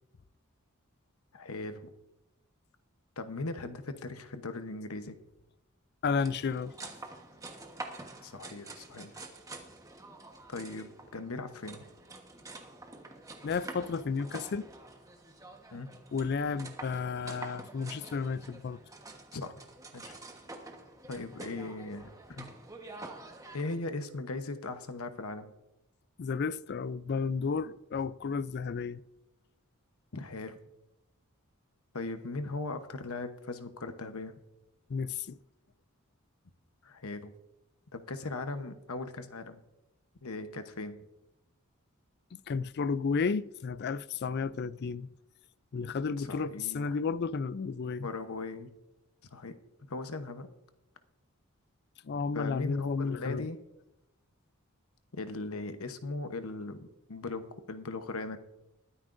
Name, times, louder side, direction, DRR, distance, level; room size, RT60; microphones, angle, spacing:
voice 1, 1.3-1.9 3.2-5.2 8.2-9.2 10.5-11.8 15.7-15.9 19.3-19.5 19.9-20.1 21.1-22.5 23.5-25.5 30.1-30.6 31.9-34.3 36.8-37.3 37.9-39.6 40.2-41.0 46.2-47.0 48.0-48.7 49.3-49.6 49.9-50.5 52.3-53.6 55.1-58.4, left 3 dB, 80° left, 1.0 m, -39 dB
voice 2, 6.0-6.7 13.4-14.7 16.1-18.8 26.2-29.0 34.9-35.4 42.5-45.1 45.7-48.1 52.0-53.5, left 5 dB, 50° left, 0.4 m, -32 dB
sound 1, 6.1-23.8, right 2 dB, 15° right, 1.2 m, -47 dB
20.5 x 9.8 x 2.6 m
head